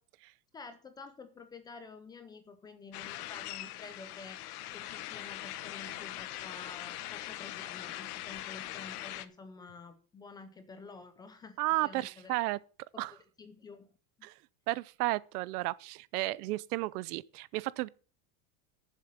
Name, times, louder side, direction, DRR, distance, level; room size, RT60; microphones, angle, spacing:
voice 1, 0.5-4.4 4.7-12.3 12.9-13.9 14.2-14.3, left 4 dB, 10° left, 0.4 m, -50 dB
sound 1, 2.9-9.3, left 15 dB, 85° left, 1.1 m, -41 dB
voice 2, 11.6-12.6 13.0-13.1 14.2-14.3 14.7-17.9, right 19 dB, 85° right, 0.7 m, -33 dB
10.0 x 7.5 x 7.2 m
supercardioid pair, 175°, 44 cm